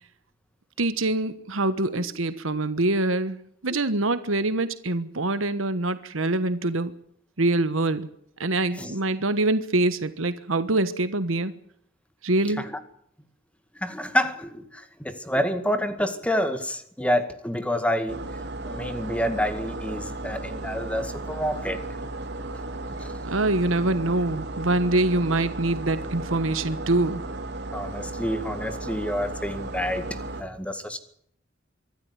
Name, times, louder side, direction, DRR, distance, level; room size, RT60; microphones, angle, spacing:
voice 1, 0.8-6.9 7.4-8.1 8.4-11.5 12.2-12.6 23.2-27.2, right 2 dB, 80° right, 12 dB, 1.3 m, -24 dB
voice 2, 13.8-18.2 18.7-21.8 23.0-23.1 27.7-31.0, equal, 5° left, 9 dB, 2.1 m, -28 dB
sound 1, 18.1-30.4, right 2 dB, 60° right, 3.5 m, -35 dB
25.0 x 13.0 x 9.8 m, 0.69 s
head